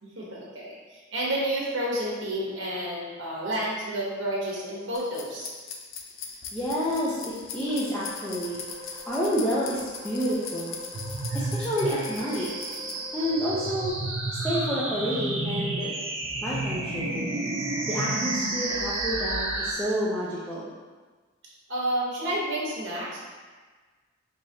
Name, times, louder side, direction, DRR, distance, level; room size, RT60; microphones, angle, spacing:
voice 1, 0.0-5.5 21.7-23.2, right 1 dB, 65° right, -5 dB, 1.0 m, -30 dB
sound 1, 4.9-12.9, left 6 dB, 80° left, 0.5 m, -40 dB
voice 2, 6.5-8.6 9.1-10.8 11.3-12.5 13.1-13.9 14.4-15.9 16.4-17.2 17.9-20.7, equal, 5° left, -10 dB, 0.5 m, -29 dB
sound 2, 7.7-13.9, left 2 dB, 20° right, 1.0 m, -44 dB
sound 3, 10.9-19.7, right 2 dB, 85° right, 0.6 m, -31 dB
4.7 x 2.8 x 2.8 m, 1.4 s
head